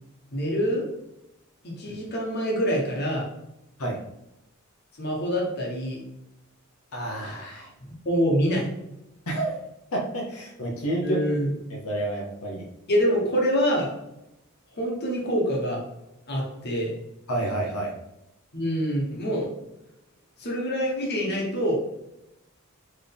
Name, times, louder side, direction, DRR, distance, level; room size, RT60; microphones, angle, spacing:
voice 1, 0.3-0.8 1.6-3.3 5.0-6.0 8.0-8.7 11.0-11.6 12.9-13.9 14.7-15.8 16.3-17.0 18.5-19.5 20.4-21.8, equal, 50° left, -2 dB, 1.2 m, -25 dB
voice 2, 6.9-7.7 9.3-9.6 9.9-11.3 11.7-12.6 17.3-17.9, right 1 dB, 85° left, -2 dB, 0.9 m, -29 dB
4.5 x 3.2 x 3.5 m, 0.87 s
head